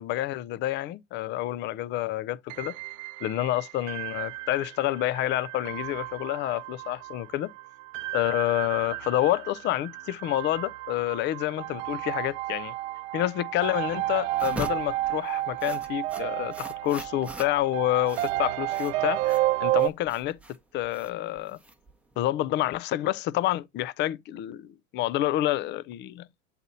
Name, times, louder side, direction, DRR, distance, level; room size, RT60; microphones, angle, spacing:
voice 1, 0.0-2.7 3.2-7.5 8.1-12.7 13.1-20.4 20.7-21.6 22.2-26.3, left 14 dB, 30° left, 0.4 m, -28 dB
sound 1, 2.5-19.9, right 16 dB, 70° right, 0.6 m, -32 dB
sound 2, 14.3-22.2, right 1 dB, 5° right, 0.9 m, -42 dB
7.7 x 4.1 x 4.0 m
hypercardioid pair, 110°, 40 cm